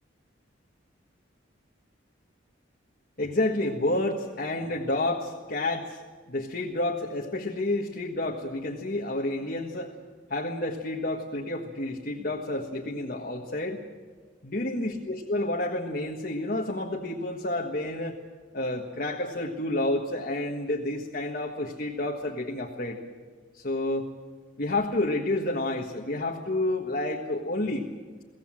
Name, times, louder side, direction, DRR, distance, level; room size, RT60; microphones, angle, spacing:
voice 1, 3.2-6.0 6.3-9.9 10.3-13.8 14.4-18.2 18.5-23.0 23.5-24.1 24.6-27.9, left 2 dB, 50° left, -1 dB, 1.6 m, -29 dB
23.5 x 17.0 x 7.6 m, 1.4 s
head